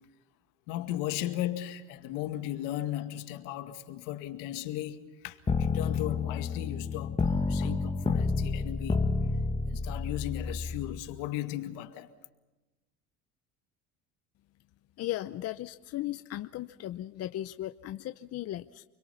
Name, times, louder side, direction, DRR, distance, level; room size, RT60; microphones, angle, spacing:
voice 1, 0.7-9.0 9.7-12.1, left 13 dB, 80° left, 2.1 m, -36 dB
sound 1, 5.5-11.0, left 4 dB, 20° left, 1.5 m, -30 dB
voice 2, 15.0-18.8, left 14 dB, 50° left, 0.8 m, -36 dB
29.5 x 22.5 x 5.7 m
supercardioid pair, 105°, 32 cm